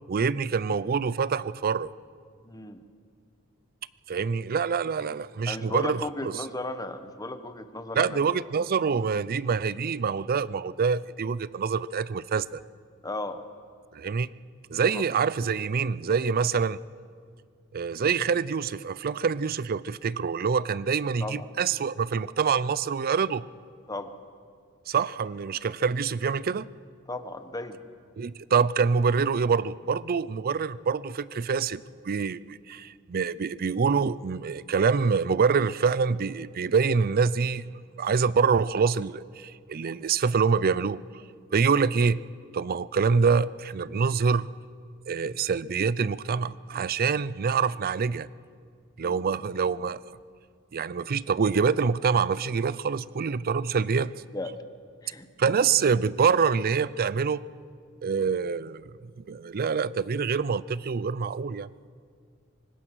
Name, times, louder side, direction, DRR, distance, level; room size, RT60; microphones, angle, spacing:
voice 1, 0.1-1.9 4.1-6.4 8.0-12.6 13.9-14.3 14.7-16.8 17.7-23.5 24.9-26.7 28.2-37.7 38.0-41.0 41.5-42.2 42.5-44.5 45.1-48.3 49.0-50.0 50.7-54.1 55.4-57.4 58.0-58.9 59.3-61.7, right 5 dB, 45° right, 19 dB, 0.4 m, -26 dB
voice 2, 2.4-2.8 5.5-8.2 13.0-13.4 14.9-15.0 21.2-21.5 23.9-24.2 27.1-27.8 49.0-49.2 54.3-54.6 55.0-55.3, left 2 dB, 15° left, 9 dB, 1.1 m, -35 dB
24.5 x 19.5 x 6.2 m, 2.1 s
head